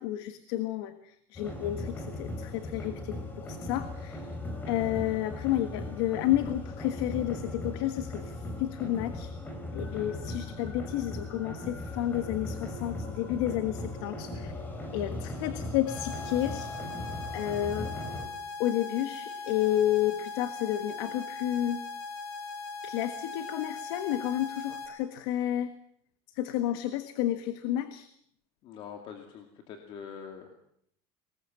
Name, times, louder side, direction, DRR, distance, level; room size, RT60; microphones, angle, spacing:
voice 1, 0.0-4.3 4.7-9.3 9.7-14.5 14.9-16.7 17.3-17.9 18.6-21.8 22.8-25.7 26.3-28.1, left 13 dB, 90° left, 10 dB, 1.6 m, -31 dB
sound 1, 1.4-18.3, left 2 dB, 15° left, 3.3 m, -38 dB
sound 2, 15.9-24.9, left 4 dB, 70° left, 4.0 m, -40 dB
voice 2, 28.6-30.6, left 7 dB, 40° left, 4 dB, 2.5 m, -44 dB
24.0 x 20.5 x 7.5 m, 0.68 s
cardioid pair, 175°, 13 cm